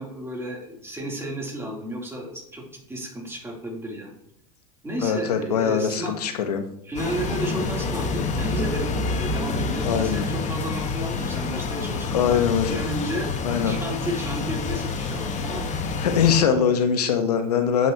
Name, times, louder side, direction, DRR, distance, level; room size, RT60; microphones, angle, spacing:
voice 1, 0.0-4.1 4.8-6.1 6.8-15.7, right 1 dB, 15° right, -2 dB, 3.1 m, -33 dB
voice 2, 5.0-6.6 9.8-10.3 12.1-12.8 13.4-13.8 16.0-17.9, left 7 dB, 90° left, 7 dB, 1.0 m, -22 dB
sound 1, 7.0-16.4, left 3 dB, 40° left, 1.3 m, -28 dB
8.1 x 7.5 x 2.9 m, 0.75 s
hypercardioid pair, 90°, 19 cm